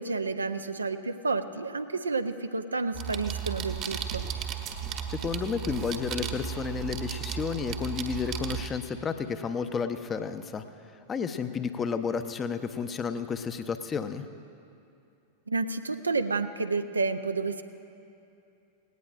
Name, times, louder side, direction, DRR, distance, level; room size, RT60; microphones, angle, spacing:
voice 1, 0.0-4.2 15.5-17.6, right 3 dB, 80° right, 9 dB, 0.5 m, -30 dB
sound 1, 2.9-8.7, right 8 dB, 35° right, 0.9 m, -35 dB
voice 2, 5.1-10.6 11.1-14.2, left 6 dB, 20° left, 9 dB, 0.6 m, -31 dB
18.0 x 17.5 x 2.5 m, 2.6 s
figure-of-eight pair, 90°, 0 cm